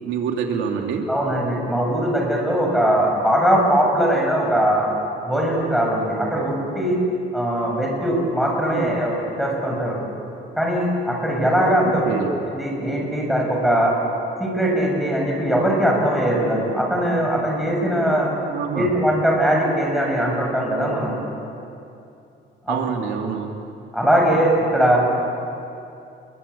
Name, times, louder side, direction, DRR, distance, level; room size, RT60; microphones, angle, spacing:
voice 1, 0.0-1.1 8.7-9.0 11.8-12.3 18.5-18.9 22.7-23.5, right 7 dB, 85° right, 2 dB, 2.8 m, -26 dB
voice 2, 1.1-4.9 5.2-7.0 7.3-10.0 10.6-12.1 12.5-13.9 14.4-18.3 18.7-21.2 22.6-22.8 23.9-25.0, right 1 dB, ahead, -2 dB, 7.3 m, -20 dB
29.0 x 23.0 x 8.6 m, 2.6 s
cardioid pair, 145°, 19 cm